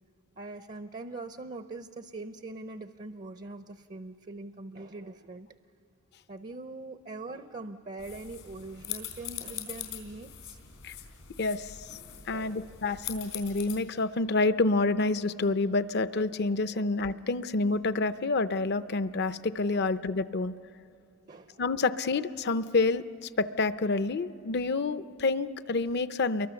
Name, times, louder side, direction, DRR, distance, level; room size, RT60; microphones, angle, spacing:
voice 1, 0.4-5.5 6.3-10.6 12.3-12.8 16.7-16.9 19.7-19.9 21.3-21.6, right 3 dB, 35° right, 10 dB, 0.5 m, -42 dB
sound 1, 8.0-13.8, left 10 dB, 85° left, 3.9 m, -42 dB
voice 2, 11.4-11.8 12.3-20.5 21.6-26.5, left 3 dB, 50° left, 13 dB, 0.6 m, -28 dB
28.5 x 23.0 x 7.0 m, 2.8 s
head